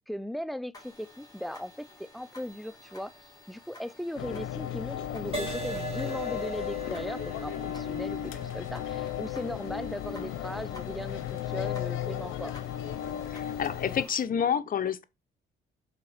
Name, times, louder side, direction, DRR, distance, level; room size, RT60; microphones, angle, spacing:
voice 1, 0.1-3.2 3.5-12.5, equal, ahead, 0.4 m, -38 dB
sound 1, 0.7-14.2, left 2 dB, 20° left, 2.5 m, -53 dB
sound 2, 4.2-14.0, left 11 dB, 90° left, 0.7 m, -35 dB
Crash cymbal, 5.3-13.0 13.6-13.9, right 4 dB, 30° right, 3.1 m, -42 dB
voice 2, 13.3-15.0, left 8 dB, 45° left, 0.8 m, -29 dB
5.8 x 4.1 x 5.0 m
cardioid pair, 90°, 20 cm